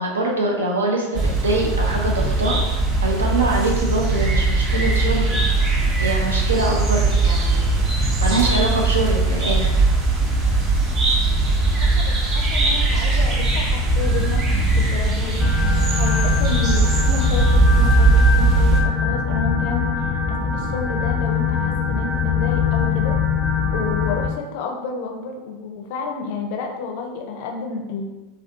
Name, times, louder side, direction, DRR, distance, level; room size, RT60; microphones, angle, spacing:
voice 1, 0.0-5.3 5.6-7.7 8.0-9.8, right 2 dB, 80° right, -1 dB, 0.5 m, -24 dB
sound 1, 1.1-18.8, right 2 dB, 35° right, 0.5 m, -19 dB
voice 2, 11.6-14.4 14.7-15.5 16.0-23.2 23.7-28.0, left 4 dB, 60° left, 2 dB, 0.4 m, -30 dB
sound 2, 15.4-24.3, left 6 dB, 10° left, 0.6 m, -23 dB
2.5 x 2.3 x 2.4 m, 1.1 s
hypercardioid pair, 85°, 0 cm